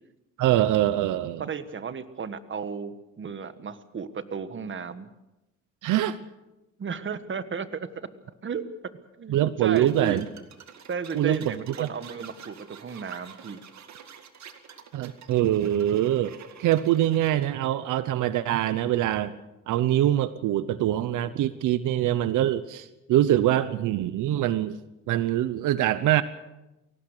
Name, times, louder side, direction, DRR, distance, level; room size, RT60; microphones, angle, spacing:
voice 1, 0.4-1.4 5.8-6.2 9.3-10.2 11.1-11.9 14.9-19.4 19.7-24.8 25.1-26.2, right 12 dB, 85° right, 14 dB, 0.9 m, -24 dB
voice 2, 1.4-5.1 6.8-8.1 8.4-8.7 9.2-10.2 10.9-13.6, right 6 dB, 40° right, 12 dB, 1.5 m, -34 dB
sound 1, 9.8-17.5, right 7 dB, 65° right, 2.2 m, -48 dB
22.5 x 18.0 x 6.7 m, 0.97 s
cardioid pair, 90°, 30 cm